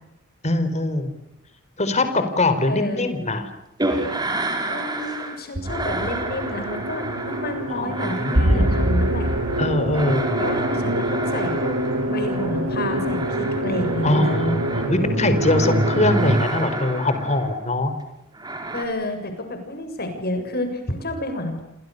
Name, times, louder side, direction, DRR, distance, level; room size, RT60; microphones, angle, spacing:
voice 1, 0.4-1.1 1.8-3.5 7.7-8.7 9.6-10.3 14.0-17.9, left 2 dB, 35° left, 9 dB, 4.4 m, -22 dB
voice 2, 2.6-3.0 4.7-9.3 10.4-11.8 12.0-14.4 18.7-21.6, left 1 dB, 50° left, 7 dB, 7.4 m, -29 dB
sound 1, 3.8-5.4 5.6-15.0 15.3-17.6 18.3-18.8, right 2 dB, 20° right, 5.2 m, -30 dB
sound 2, 5.5-16.4, right 1 dB, 75° right, 7.3 m, -24 dB
29.5 x 27.5 x 6.9 m, 0.85 s
head